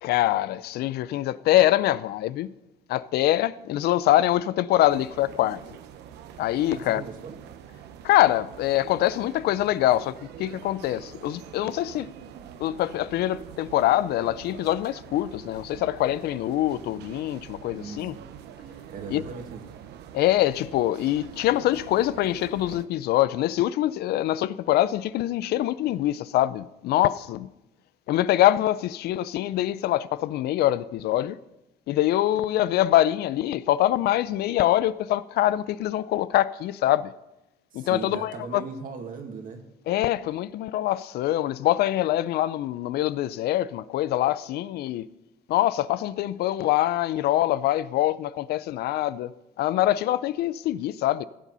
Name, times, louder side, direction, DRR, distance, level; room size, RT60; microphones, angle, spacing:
voice 1, 0.0-2.5 2.9-5.6 6.4-7.0 8.0-12.1 12.6-18.1 19.1-19.2 20.1-27.5 28.1-31.4 31.9-37.1 37.7-38.6 39.9-45.1 45.5-49.3 49.6-51.2, left 14 dB, 75° left, 0.5 m, -24 dB
sound 1, 4.9-22.9, right 9 dB, 80° right, 0.8 m, -45 dB
voice 2, 6.7-7.4 17.7-18.3 18.9-19.8 37.7-39.7, right 5 dB, 55° right, 2.0 m, -38 dB
16.5 x 7.4 x 5.5 m
cardioid pair, 110°, 17 cm